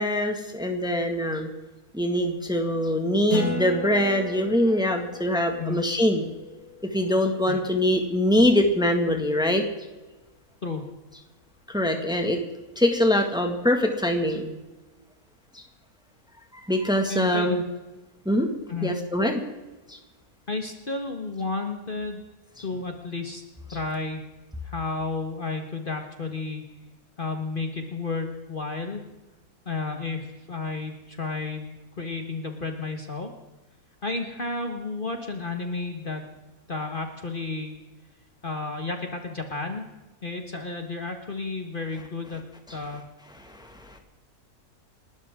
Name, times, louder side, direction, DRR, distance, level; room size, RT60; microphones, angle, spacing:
voice 1, 0.0-1.5 1.9-6.3 6.9-9.6 11.7-12.4 12.8-14.5 15.5-15.6 16.7-17.6 18.3-18.5 18.8-19.4 19.9-20.0 43.4-44.0, left 1 dB, 5° right, 4 dB, 1.8 m, -23 dB
Acoustic guitar, 3.3-8.3, left 1 dB, 75° left, 4.7 m, -36 dB
voice 2, 17.1-17.6 18.7-19.0 20.5-22.2 22.6-23.4 23.7-24.2 24.6-26.7 27.2-29.0 29.7-33.3 34.0-36.3 36.7-37.8 38.4-39.9 40.2-42.4 42.7-43.0, left 3 dB, 35° left, 4 dB, 1.6 m, -32 dB
29.5 x 12.5 x 3.7 m, 1.1 s
omnidirectional pair, 1.6 m